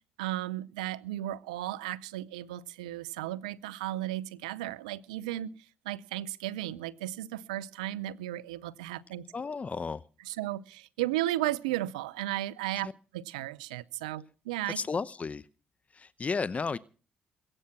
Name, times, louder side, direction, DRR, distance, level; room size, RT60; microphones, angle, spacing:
voice 1, 0.2-5.5 5.8-9.3 10.2-14.8, right 15 dB, 90° right, 0.6 m, -35 dB
voice 2, 9.3-10.0 12.8-12.9 14.8-15.4 16.0-16.8, left 4 dB, 40° left, 0.8 m, -33 dB
22.0 x 8.8 x 6.0 m
hypercardioid pair, 50°, 4 cm